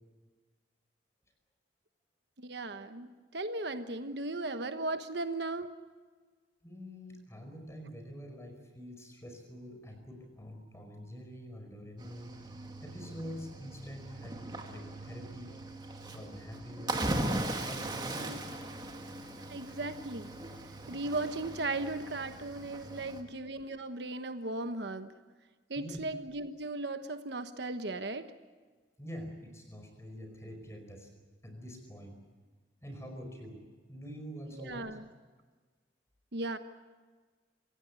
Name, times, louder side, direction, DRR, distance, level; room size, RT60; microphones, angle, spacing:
voice 1, 2.4-5.8 18.3-18.4 19.5-20.3 20.9-25.1 25.7-28.3 34.5-35.0 36.3-36.6, right 2 dB, 65° right, 9 dB, 1.2 m, -37 dB
voice 2, 6.6-12.3 12.8-15.5 16.1-17.0 17.6-18.4 25.7-26.0 29.0-31.1 31.4-32.2 32.8-33.6 33.9-35.0, equal, 15° left, 4 dB, 5.0 m, -46 dB
Cricket / Waves surf, 12.0-23.2, right 1 dB, 20° right, 2.2 m, -39 dB
26.5 x 16.5 x 9.6 m, 1.4 s
head